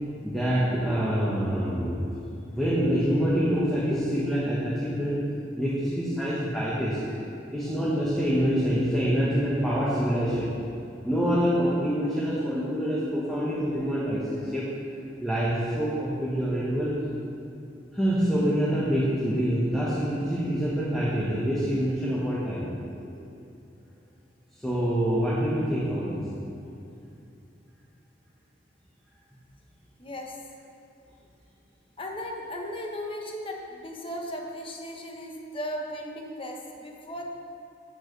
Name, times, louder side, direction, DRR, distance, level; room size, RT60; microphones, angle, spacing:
voice 1, 0.2-2.0 2.5-5.2 5.6-7.0 7.5-10.5 11.0-14.7 15.2-17.0 17.9-22.7 24.6-26.3, equal, ahead, -8 dB, 1.5 m, -26 dB
voice 2, 30.0-30.4 32.0-37.3, equal, 30° left, 1 dB, 1.2 m, -36 dB
13.0 x 9.0 x 3.4 m, 2.7 s
head